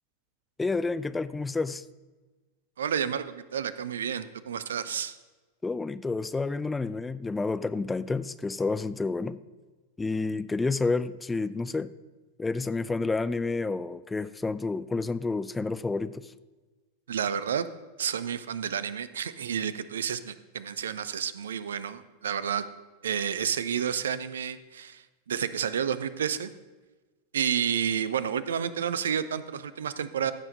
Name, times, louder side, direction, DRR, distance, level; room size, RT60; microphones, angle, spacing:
voice 1, 0.6-1.8 5.6-9.4 10.0-11.9 12.4-16.3, left 3 dB, 10° left, 15 dB, 0.3 m, -29 dB
voice 2, 2.8-5.1 17.1-17.7 18.0-22.6 23.0-26.5 27.3-30.3, right 8 dB, 65° right, 15 dB, 0.5 m, -30 dB
14.5 x 4.9 x 5.1 m, 1.3 s
figure-of-eight pair, 90°, 0 cm